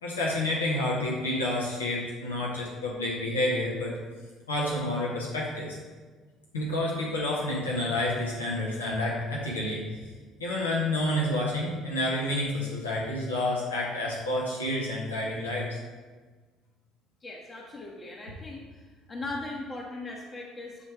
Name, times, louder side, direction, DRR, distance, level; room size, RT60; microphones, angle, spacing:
voice 1, 0.0-4.0 4.5-5.8 6.5-9.8 10.4-15.8, left 1 dB, 90° left, -4 dB, 1.0 m, -29 dB
voice 2, 17.2-18.6 19.1-20.8, left 2 dB, 35° left, -2 dB, 1.0 m, -39 dB
7.7 x 3.2 x 4.6 m, 1.4 s
hypercardioid pair, 55°, 0 cm